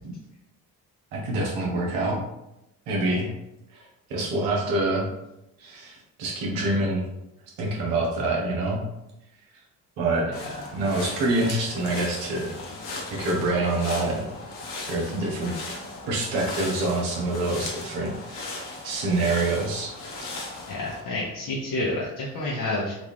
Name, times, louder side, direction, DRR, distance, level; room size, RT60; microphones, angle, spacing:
voice 1, 1.1-2.2 2.9-3.3 3.7-3.8 4.1-5.1 5.6-7.0 7.6-8.8 10.0-10.3 10.7-12.5 13.1-14.3 14.8-15.5 16.1-18.6 18.8-19.9, right 2 dB, 80° right, -1 dB, 1.0 m, -26 dB
sound 1, 10.3-21.0, left 2 dB, 85° left, 0.9 m, -37 dB
voice 2, 20.7-22.9, left 2 dB, 55° left, -5 dB, 0.9 m, -29 dB
3.8 x 2.4 x 3.4 m, 0.90 s
hypercardioid pair, 55°, 41 cm